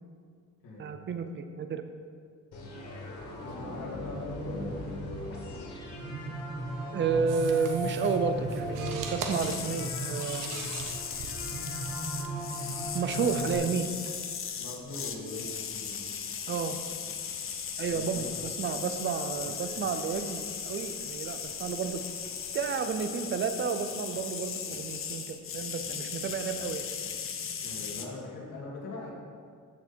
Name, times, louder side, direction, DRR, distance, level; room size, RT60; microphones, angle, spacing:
voice 1, 0.8-1.8 6.9-10.5 12.9-13.9 16.5-16.8 17.8-22.0 22.5-26.9, right 6 dB, 35° right, 9 dB, 0.6 m, -31 dB
sound 1, 2.5-13.5, equal, 60° left, 3.0 m, -37 dB
voice 2, 3.4-4.8 14.6-16.0 17.9-18.4 19.4-19.7 27.6-29.1, left 2 dB, 80° left, -4 dB, 2.9 m, -41 dB
sound 2, 7.3-23.8, right 4 dB, 80° right, 1.3 m, -47 dB
sound 3, 9.3-28.1, left 7 dB, 40° left, 0.8 m, -37 dB
14.5 x 6.5 x 4.5 m, 2.1 s
cardioid pair, 175°, 32 cm